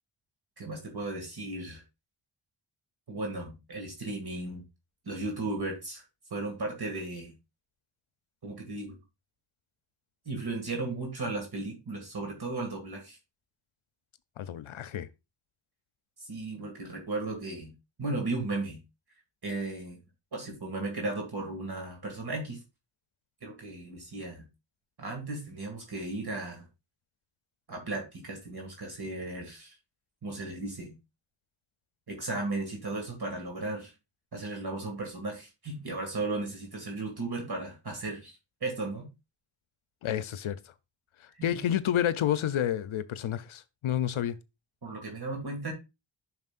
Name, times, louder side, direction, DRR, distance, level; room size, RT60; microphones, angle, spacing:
voice 1, 0.6-1.8 3.1-4.6 5.1-6.0 6.3-7.3 8.4-9.0 10.3-13.2 16.2-17.7 18.0-18.8 19.4-20.0 20.3-22.6 23.4-24.4 25.0-26.7 27.7-29.8 30.2-30.9 32.1-33.9 34.3-38.4 38.6-39.1 41.3-41.6 44.8-45.7, right 2 dB, 50° right, 2.3 m, -35 dB
voice 2, 14.4-15.1 40.0-40.6 41.2-44.4, left 10 dB, 75° left, 0.6 m, -30 dB
9.2 x 6.0 x 2.5 m
cardioid pair, 65°, 49 cm